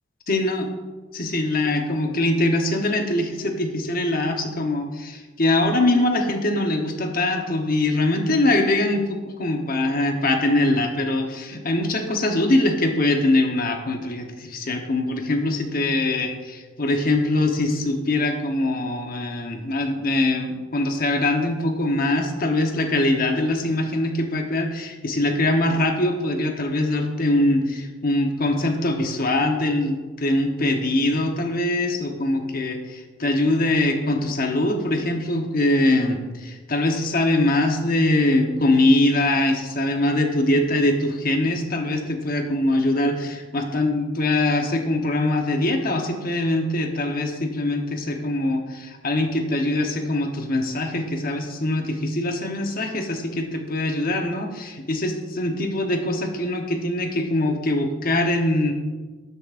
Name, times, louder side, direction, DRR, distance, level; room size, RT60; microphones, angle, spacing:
voice 1, 0.3-0.7 1.1-58.7, left 1 dB, 45° left, 4 dB, 1.0 m, -22 dB
12.5 x 8.2 x 2.5 m, 1.3 s
head